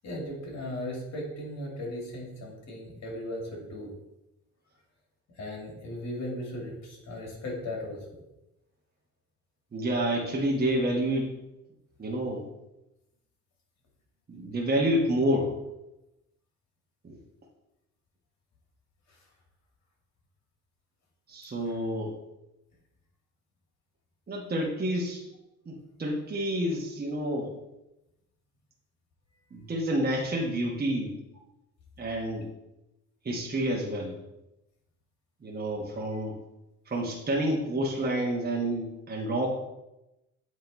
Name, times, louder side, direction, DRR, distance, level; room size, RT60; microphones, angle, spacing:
voice 1, 0.0-3.9 5.4-8.0, left 1 dB, 60° left, -1 dB, 2.2 m, -37 dB
voice 2, 9.7-11.3 12.0-12.4 14.3-15.5 17.0-17.2 21.3-22.1 24.3-25.2 25.7-27.5 29.5-31.2 32.0-32.5 33.2-34.1 35.4-36.4 36.9-39.5, right 1 dB, 30° right, -2 dB, 1.1 m, -29 dB
8.0 x 3.1 x 4.1 m, 0.95 s
cardioid pair, 90°, 30 cm